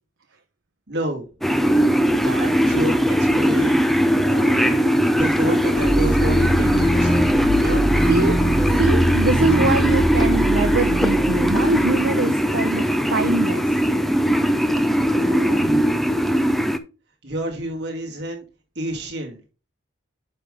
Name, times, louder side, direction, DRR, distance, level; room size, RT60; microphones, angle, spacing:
voice 1, 0.9-1.3 2.2-3.8 4.2-7.1 7.5-7.9 15.2-16.1 17.2-18.4 18.8-19.4, right 1 dB, 55° right, 0 dB, 2.3 m, -29 dB
sound 1, 1.4-16.8, equal, ahead, 0.5 m, -19 dB
sound 2, 5.8-12.0, equal, 80° left, 2.8 m, -23 dB
voice 2, 8.6-13.6, right 3 dB, 70° right, 8 dB, 0.8 m, -23 dB
9.6 x 5.2 x 3.4 m, 0.32 s
head